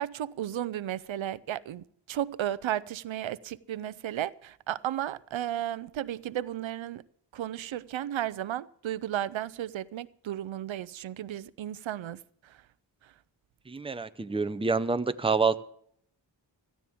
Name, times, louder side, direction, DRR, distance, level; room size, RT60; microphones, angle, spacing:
voice 1, 0.0-7.0 7.3-12.6 13.0-13.1, right 11 dB, 85° right, 0.6 m, -34 dB
voice 2, 13.7-15.6, right 4 dB, 10° right, 0.6 m, -27 dB
17.0 x 14.0 x 3.6 m
wide cardioid pair, 100°, 45 cm